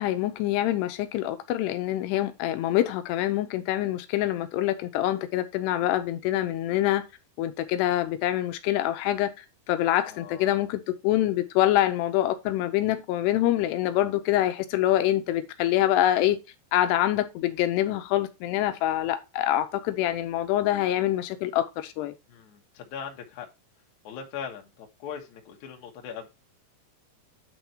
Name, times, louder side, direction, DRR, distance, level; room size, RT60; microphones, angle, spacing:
voice 1, 0.0-7.0 7.4-16.4 16.7-22.1, left 13 dB, 85° left, 2.8 m, -25 dB
voice 2, 10.0-10.7 22.3-23.5 24.0-26.3, left 7 dB, 60° left, 2.3 m, -40 dB
9.6 x 4.0 x 4.4 m
omnidirectional pair, 4.8 m